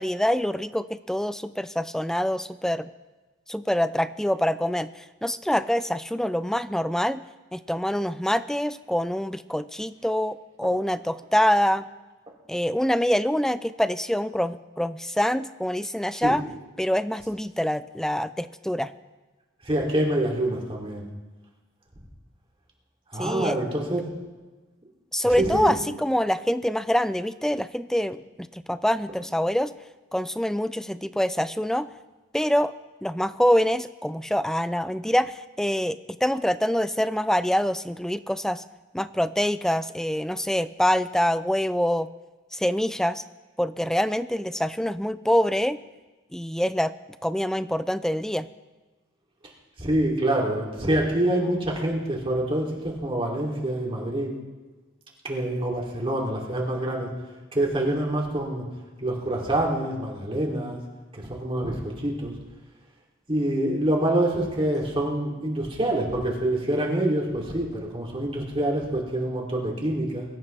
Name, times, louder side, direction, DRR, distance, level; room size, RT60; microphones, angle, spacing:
voice 1, 0.0-2.9 3.5-7.2 7.5-11.9 12.5-16.4 16.8-18.9 23.2-23.6 25.1-29.7 30.1-31.9 32.3-32.7 33.0-38.6 38.9-42.1 42.5-43.2 43.6-45.8 46.3-46.9 47.2-48.5, equal, ahead, 14 dB, 0.4 m, -25 dB
voice 2, 19.6-21.0 23.1-24.1 25.2-25.8 49.8-54.3 55.2-57.1 57.5-58.6 59.0-60.8 61.1-62.3 63.3-70.3, right 1 dB, 25° right, -2 dB, 3.0 m, -26 dB
23.5 x 14.0 x 3.4 m, 1.2 s
head